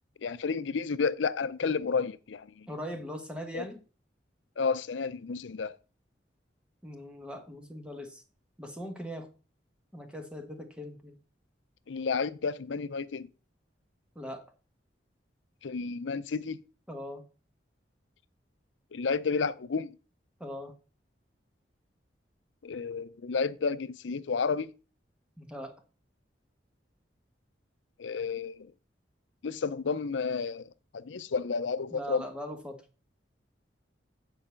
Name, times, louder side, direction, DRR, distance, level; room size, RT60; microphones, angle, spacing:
voice 1, 0.2-2.7 3.5-3.7 4.6-5.8 11.9-13.3 15.6-16.6 18.9-19.9 22.6-24.7 28.0-28.7 29.4-32.3, left 5 dB, 85° left, 0.5 m, -31 dB
voice 2, 2.7-3.8 6.8-8.2 8.6-9.3 9.9-11.2 14.1-14.4 16.9-17.2 20.4-20.7 25.4-25.7 31.9-32.8, equal, 5° right, 1.2 m, -40 dB
8.9 x 4.8 x 5.6 m
head